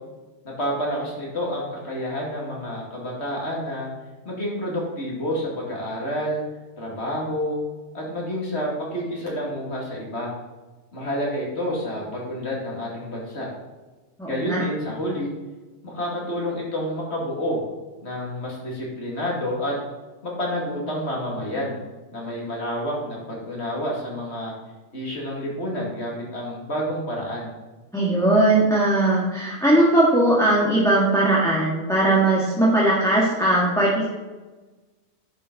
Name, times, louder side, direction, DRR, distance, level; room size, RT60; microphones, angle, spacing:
voice 1, 0.4-3.9 4.2-6.4 6.8-7.6 7.9-10.3 10.9-13.5 14.2-15.3 15.8-17.6 18.0-19.8 20.2-21.8 22.1-24.5 24.9-27.5, equal, 55° left, -3 dB, 2.8 m, -29 dB
voice 2, 14.2-14.6 27.9-34.1, right 1 dB, ahead, -6 dB, 1.8 m, -19 dB
10.0 x 7.3 x 4.2 m, 1.2 s
omnidirectional pair, 1.4 m